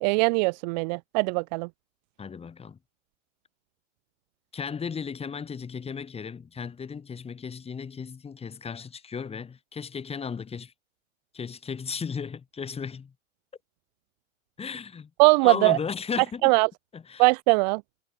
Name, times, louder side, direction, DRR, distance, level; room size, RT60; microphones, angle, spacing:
voice 1, 0.0-1.7 15.2-15.8 16.4-16.7 17.2-17.8, right 31 dB, 35° right, 0.5 m, -21 dB
voice 2, 2.2-2.8 4.5-10.7 11.3-13.1 14.6-15.1 15.4-16.5 16.9-17.3, left 6 dB, 15° left, 3.2 m, -35 dB
hypercardioid pair, 110°, 38 cm